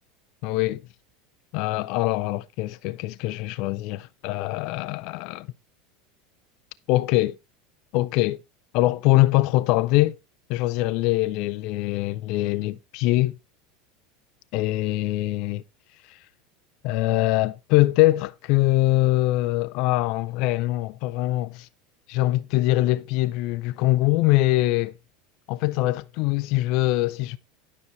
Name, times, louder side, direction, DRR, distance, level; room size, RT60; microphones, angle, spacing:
voice 1, 0.4-0.8 1.5-5.5 6.9-7.4 7.9-8.4 8.7-10.2 10.5-13.4 14.5-15.6 16.1-16.2 16.8-21.7 22.1-24.9 25.5-27.4, left 17 dB, 50° left, 0.4 m, -23 dB
12.0 x 6.1 x 4.2 m
figure-of-eight pair, 75°, 0 cm